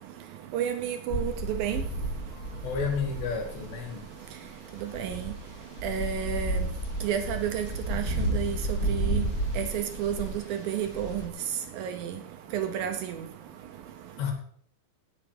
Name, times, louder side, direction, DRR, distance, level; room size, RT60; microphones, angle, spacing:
voice 1, 0.5-1.8 4.9-5.2 5.8-6.6 7.0-8.6 8.9-9.3 9.6-10.3 10.7-11.3 11.8-12.1 12.5-13.2, right 9 dB, 75° right, 7 dB, 2.3 m, -30 dB
sound 1, 1.1-11.3, right 1 dB, 25° left, 2.5 m, -32 dB
voice 2, 2.6-4.0 14.2-14.3, left 6 dB, 85° left, 4 dB, 4.7 m, -31 dB
18.0 x 8.2 x 5.1 m, 0.62 s
omnidirectional pair, 4.8 m